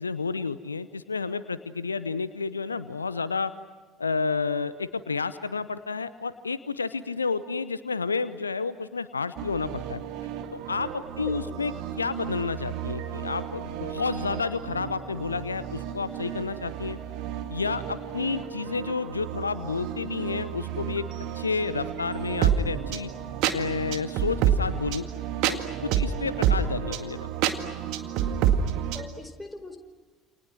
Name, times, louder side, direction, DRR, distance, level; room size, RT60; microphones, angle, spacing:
voice 1, 0.0-3.5 4.0-10.0 10.5-17.0 17.5-21.1 21.3-23.1 23.5-25.0 25.5-27.3, left 4 dB, 80° left, 15 dB, 0.7 m, -30 dB
sound 1, 9.4-29.0, right 9 dB, 55° right, 2.1 m, -30 dB
voice 2, 11.1-11.6 28.9-29.8, left 2 dB, 10° left, 5 dB, 4.9 m, -41 dB
29.5 x 29.0 x 6.1 m, 1.3 s
figure-of-eight pair, 60°, 0 cm